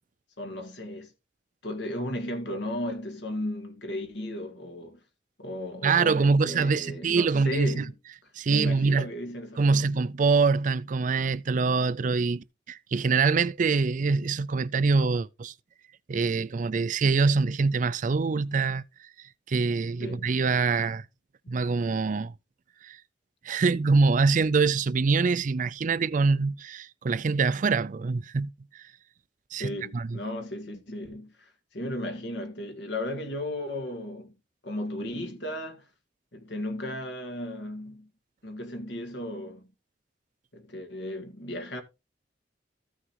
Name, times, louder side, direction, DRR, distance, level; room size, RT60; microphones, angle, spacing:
voice 1, 0.4-1.1 1.6-5.0 5.4-7.9 8.5-10.0 20.0-20.4 29.6-34.3 34.6-35.9 36.3-38.1 38.4-39.7 40.5-41.8, left 1 dB, 80° left, 1.8 m, -35 dB
voice 2, 5.8-7.8 8.4-9.0 9.6-15.5 16.1-18.8 19.5-21.0 21.5-22.3 22.8-23.0 23.4-28.5 29.5-30.2, right 4 dB, 45° right, 0.4 m, -24 dB
14.5 x 6.3 x 2.9 m
head